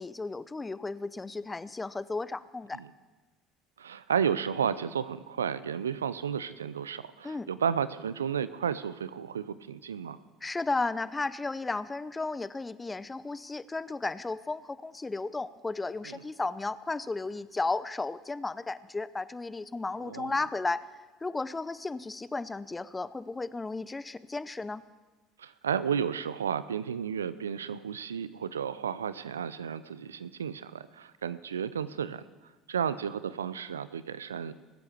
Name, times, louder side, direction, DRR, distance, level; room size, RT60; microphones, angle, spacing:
voice 1, 0.0-2.8 7.2-7.5 10.4-20.9 21.2-24.8, left 3 dB, 15° left, 16 dB, 0.7 m, -34 dB
voice 2, 3.8-10.2 16.0-16.2 20.0-20.3 25.4-32.2 32.7-34.5, right 7 dB, 85° right, 15 dB, 0.5 m, -32 dB
20.5 x 8.3 x 6.7 m, 1.3 s
hypercardioid pair, 65°, 0 cm